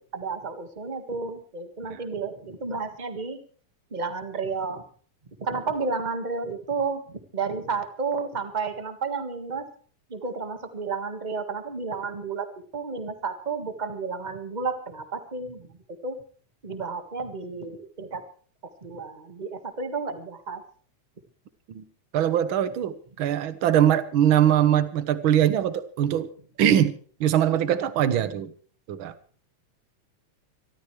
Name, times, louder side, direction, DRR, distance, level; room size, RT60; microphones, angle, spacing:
voice 1, 0.1-3.4 3.9-4.8 5.4-9.7 10.1-12.5 12.7-15.7 16.0-16.2 16.6-18.2 18.8-20.6, right 4 dB, 25° right, 8 dB, 0.9 m, -31 dB
voice 2, 22.1-26.3 26.6-28.5 28.9-29.1, right 10 dB, 60° right, 13 dB, 1.4 m, -22 dB
24.5 x 13.5 x 3.3 m, 0.43 s
omnidirectional pair, 3.4 m